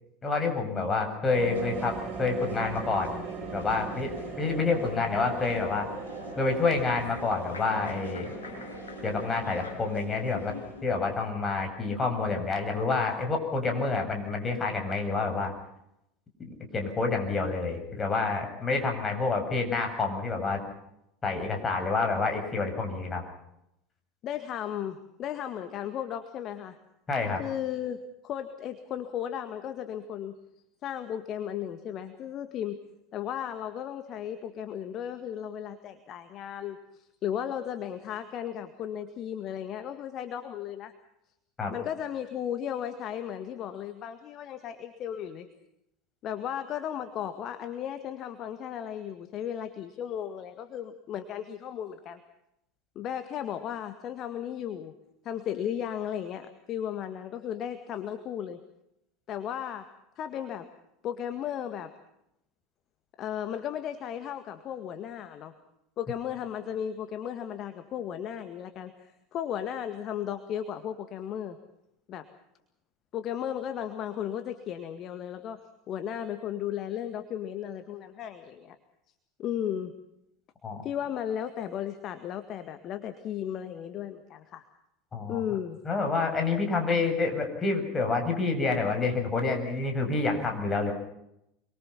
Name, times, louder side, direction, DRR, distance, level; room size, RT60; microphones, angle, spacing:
voice 1, 0.2-3.2 3.5-4.1 4.4-5.9 6.4-8.3 9.0-10.5 10.8-15.5 16.4-20.6 21.2-23.2 27.1-27.4 41.6-41.8 80.6-80.9 85.1-85.4 85.8-90.9, left 3 dB, 25° left, 4 dB, 7.8 m, -28 dB
sound 1, 1.3-11.1, right 5 dB, 30° right, 6.6 m, -40 dB
sound 2, 1.5-10.8, left 3 dB, 75° left, 6.7 m, -45 dB
voice 2, 24.2-26.8 27.4-30.4 30.8-32.8 33.1-40.9 41.7-45.5 46.2-52.2 53.0-54.9 55.2-58.6 59.3-59.9 60.2-60.7 61.0-61.9 63.2-65.5 66.0-71.6 72.1-72.3 73.1-75.6 75.9-78.8 79.4-79.9 80.8-84.6 85.3-85.8, left 9 dB, 40° left, 9 dB, 1.9 m, -35 dB
26.5 x 23.5 x 5.8 m, 0.82 s
figure-of-eight pair, 75°, 0 cm